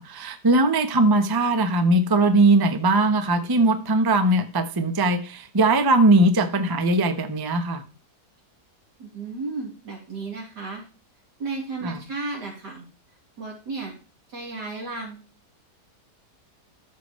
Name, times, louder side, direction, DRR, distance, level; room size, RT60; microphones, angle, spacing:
voice 1, 0.0-7.8 11.8-12.0, right 2 dB, 20° right, 8 dB, 0.6 m, -20 dB
voice 2, 9.0-10.8 11.4-12.8 13.4-13.9 14.3-15.2, right 3 dB, 90° right, -2 dB, 3.9 m, -33 dB
14.0 x 6.2 x 3.1 m, 0.34 s
omnidirectional pair, 1.8 m